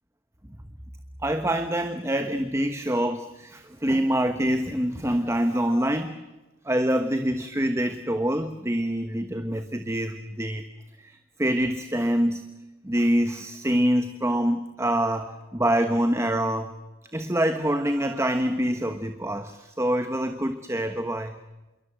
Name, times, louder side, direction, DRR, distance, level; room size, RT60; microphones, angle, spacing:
voice 1, 1.2-6.2 6.6-10.7 11.0-12.6 12.8-16.7 17.1-21.4, right 1 dB, 15° right, 8 dB, 1.2 m, -25 dB
27.0 x 22.5 x 7.6 m, 1.1 s
head